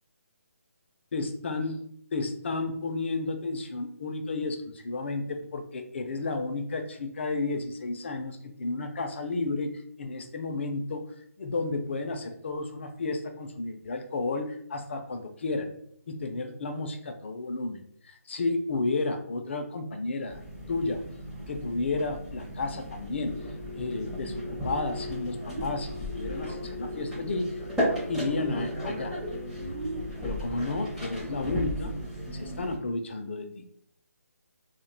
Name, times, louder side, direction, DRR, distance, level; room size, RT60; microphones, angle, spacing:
voice 1, 1.1-11.0 11.4-15.7 16.1-17.8 18.1-20.4 20.7-21.0 21.5-23.3 23.7-27.5 28.1-29.2 30.2-31.9 32.3-33.6, left 3 dB, 50° left, 6 dB, 0.4 m, -32 dB
sound 1, 20.3-32.8, equal, 5° right, 0.6 m, -35 dB
2.5 x 2.2 x 3.8 m, 0.66 s
figure-of-eight pair, 155°, 8 cm